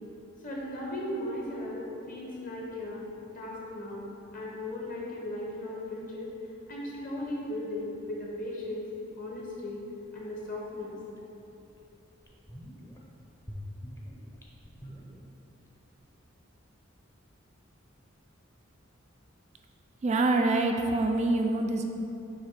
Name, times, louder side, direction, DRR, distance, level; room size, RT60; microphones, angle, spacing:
voice 1, 0.4-3.1 3.3-4.1 4.3-6.3 6.7-8.9 9.2-9.8 10.1-11.0, left 1 dB, 45° left, -4 dB, 1.2 m, -37 dB
sound 1, 11.2-11.3 11.7-11.8 12.2-13.0 13.4-15.7 15.9-16.0, equal, 15° left, 0.7 m, -44 dB
voice 2, 20.0-21.8, right 2 dB, 35° right, 4 dB, 0.3 m, -25 dB
7.3 x 3.1 x 5.0 m, 2.9 s
head